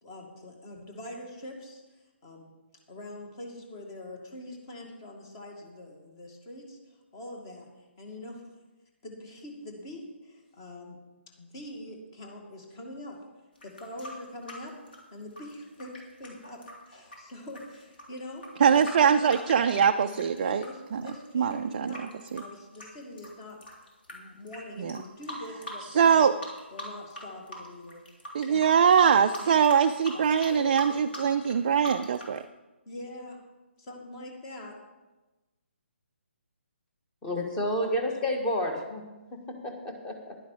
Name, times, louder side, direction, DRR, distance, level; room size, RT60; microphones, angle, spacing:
voice 1, 0.0-1.8 2.2-2.5 2.9-8.4 9.0-11.0 11.4-13.2 13.6-14.7 15.1-15.9 16.2-16.6 16.9-18.5 18.7-23.6 24.1-26.3 26.7-28.0 28.4-28.7 29.4-29.6 30.1-31.0 32.9-33.4 33.8-34.8, left 1 dB, 25° left, 2 dB, 2.2 m, -44 dB
sound 1, 13.6-20.7 21.0-24.1 24.5-24.6 24.9-26.2 26.4-27.2 27.5-32.4, equal, 50° left, 3.4 m, -42 dB
voice 2, 18.6-20.6 20.9-21.0 21.3-21.9 22.3-22.4 24.8-24.9 25.9-26.3 28.3-32.4, right 7 dB, 35° right, 7 dB, 0.4 m, -22 dB
voice 3, 37.2-40.4, left 1 dB, 10° left, 2 dB, 1.4 m, -31 dB
11.0 x 11.0 x 4.8 m, 1.1 s
figure-of-eight pair, 140°, 7 cm